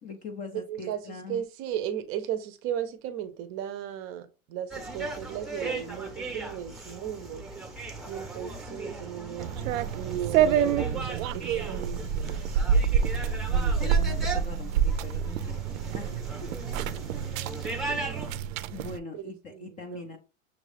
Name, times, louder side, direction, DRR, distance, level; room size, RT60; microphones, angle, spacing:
voice 1, 0.0-1.4 13.2-15.7 15.9-16.1 16.4-16.5 18.7-20.2, left 4 dB, 20° left, 0.4 m, -42 dB
voice 2, 0.7-7.5 8.1-12.6 17.9-18.2 19.1-20.2, right 10 dB, 35° right, 0.6 m, -36 dB
sound 1, 4.7-18.4, right 2 dB, ahead, 0.7 m, -38 dB
sound 2, 9.4-19.0, right 7 dB, 80° right, 0.5 m, -27 dB
6.2 x 2.4 x 3.2 m
supercardioid pair, 135°, 40 cm